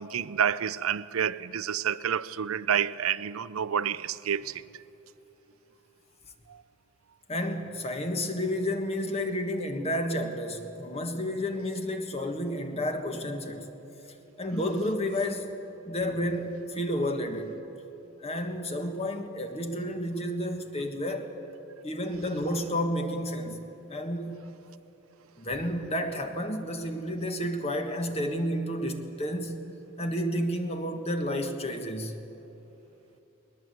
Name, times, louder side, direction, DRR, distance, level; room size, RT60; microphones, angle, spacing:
voice 1, 0.0-4.6 6.5-6.6, right 8 dB, 85° right, 0.5 m, -29 dB
voice 2, 7.3-13.7 14.1-15.5 15.9-17.6 18.2-21.3 21.8-23.6 23.9-24.4 25.4-29.6 30.0-32.2, equal, 30° left, 1.5 m, -31 dB
20.5 x 20.0 x 7.9 m
head